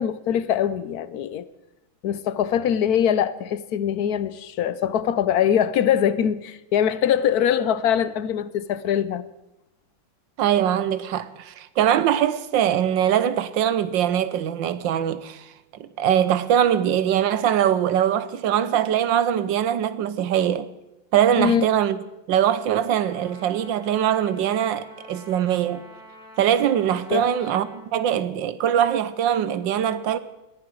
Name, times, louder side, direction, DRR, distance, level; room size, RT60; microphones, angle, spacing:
voice 1, 0.0-1.5 2.0-9.3 21.4-21.7 27.1-27.3, left 9 dB, 65° left, 1.1 m, -22 dB
voice 2, 10.4-15.5 15.7-20.7 21.1-22.0 22.3-25.8 26.4-30.2, right 10 dB, 75° right, 1.5 m, -22 dB
Trumpet, 22.9-27.9, left 1 dB, 5° right, 3.7 m, -46 dB
20.0 x 15.0 x 4.7 m
omnidirectional pair, 2.1 m